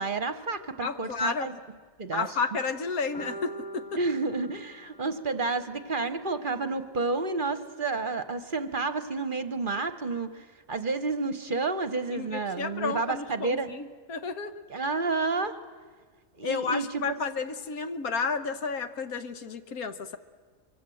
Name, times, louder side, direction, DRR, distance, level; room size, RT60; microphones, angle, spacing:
voice 1, 0.0-1.6 2.0-2.3 4.0-13.7 14.7-15.6 16.4-17.0, right 3 dB, 40° right, 11 dB, 1.0 m, -30 dB
voice 2, 0.8-1.5 2.1-3.9 12.1-14.6 16.4-20.2, left 5 dB, 85° left, 10 dB, 1.6 m, -32 dB
sound 1, 3.1-7.2, right 1 dB, 25° left, 5.0 m, -46 dB
25.0 x 23.5 x 7.7 m, 1.5 s
omnidirectional pair, 1.5 m